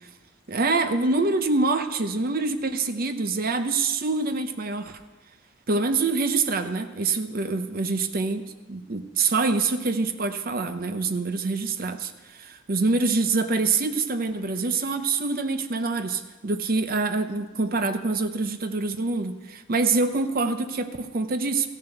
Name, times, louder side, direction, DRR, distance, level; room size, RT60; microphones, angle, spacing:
voice 1, 0.5-5.0 5.7-21.7, right 3 dB, 50° right, 8 dB, 0.7 m, -25 dB
15.0 x 7.2 x 6.7 m, 1.2 s
head